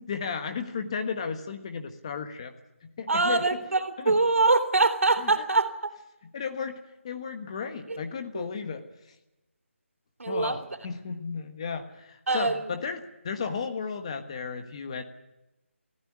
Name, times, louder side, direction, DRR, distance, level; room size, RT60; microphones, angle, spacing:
voice 1, 0.0-2.5 3.0-3.6 4.0-4.1 5.2-5.5 6.3-6.8 7.0-8.8 10.3-15.0, left 5 dB, 25° left, 7 dB, 1.4 m, -34 dB
voice 2, 3.1-5.9 7.9-8.0 8.3-8.5 10.2-10.6 12.3-12.7, right 3 dB, 80° right, 7 dB, 3.6 m, -24 dB
22.5 x 15.0 x 9.8 m, 0.97 s
figure-of-eight pair, 170°, 7 cm